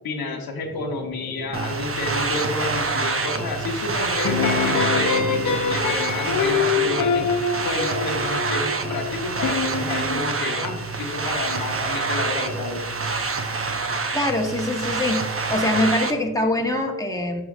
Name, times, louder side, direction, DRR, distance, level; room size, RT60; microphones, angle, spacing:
voice 1, 0.0-7.3 7.6-12.8, left 3 dB, 85° left, 2 dB, 1.1 m, -30 dB
Drum, 0.6-16.8, equal, 30° left, 1.3 m, -43 dB
sound 1, 1.5-16.1, right 4 dB, 40° right, 0.8 m, -27 dB
sound 2, 4.2-10.2, left 6 dB, 60° left, 0.7 m, -25 dB
voice 2, 14.1-15.2 15.5-17.4, left 1 dB, 10° left, 1 dB, 1.1 m, -23 dB
11.0 x 4.9 x 2.5 m, 1.1 s
cardioid pair, 65°, 36 cm